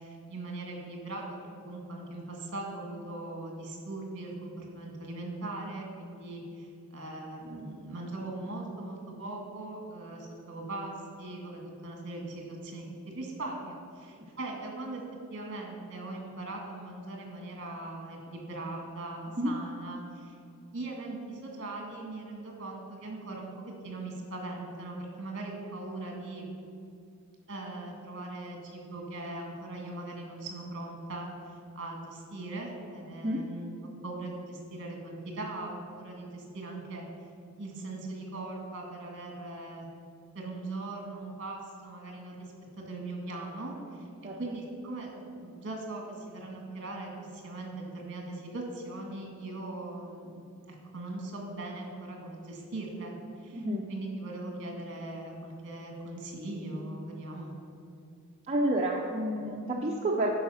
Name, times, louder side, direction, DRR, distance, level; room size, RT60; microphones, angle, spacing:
voice 1, 0.0-15.0 15.3-20.3 20.7-26.5 27.5-31.3 31.8-37.0 37.6-39.9 40.3-42.5 42.8-44.1 44.4-50.4 50.7-57.5, right 2 dB, 55° right, 1 dB, 1.9 m, -40 dB
voice 2, 53.5-53.9 58.5-60.3, right 1 dB, 30° right, -2 dB, 0.6 m, -30 dB
11.0 x 4.8 x 5.6 m, 2.4 s
head